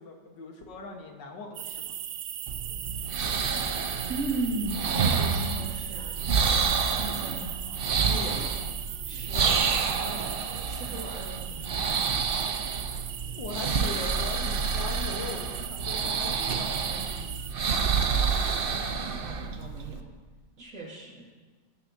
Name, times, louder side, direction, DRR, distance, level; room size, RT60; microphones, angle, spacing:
voice 1, 0.0-2.0 9.4-9.6 10.1-10.2 13.4-17.4 18.4-18.5 19.2-19.5, left 4 dB, 85° left, 2 dB, 2.0 m, -40 dB
sound 1, 1.5-17.5, right 10 dB, 65° right, 0.9 m, -38 dB
sound 2, 2.5-20.0, right 5 dB, 85° right, 0.5 m, -29 dB
voice 2, 4.1-7.6 8.0-8.6 9.0-9.5 9.8-10.3 10.6-11.7 18.0-18.3 18.8-20.1 20.6-21.2, right 2 dB, 50° right, -3 dB, 2.6 m, -37 dB
18.5 x 9.8 x 2.7 m, 1.4 s
omnidirectional pair, 1.9 m